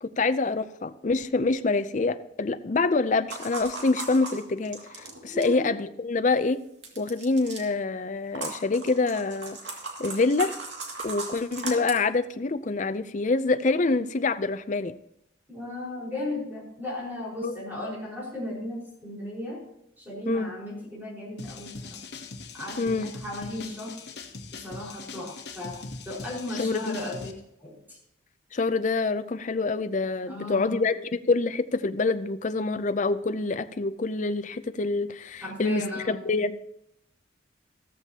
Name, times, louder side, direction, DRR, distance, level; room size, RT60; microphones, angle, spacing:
voice 1, 0.0-6.6 7.0-9.6 10.0-10.6 11.0-14.9 17.4-17.5 20.3-20.5 22.8-23.1 26.6-27.0 28.5-36.8, left 3 dB, 40° left, 11 dB, 0.5 m, -26 dB
sound 1, 3.3-5.6 6.8-7.6 8.3-12.0, right 3 dB, 75° right, 2.3 m, -37 dB
voice 2, 5.3-5.7 15.5-19.6 20.0-22.0 22.5-23.9 24.5-28.0 30.2-30.8 35.4-36.2, left 1 dB, 10° right, -4 dB, 4.9 m, -36 dB
sound 2, 21.4-27.3, left 4 dB, 60° left, 1.2 m, -41 dB
14.0 x 14.0 x 2.9 m, 0.78 s
head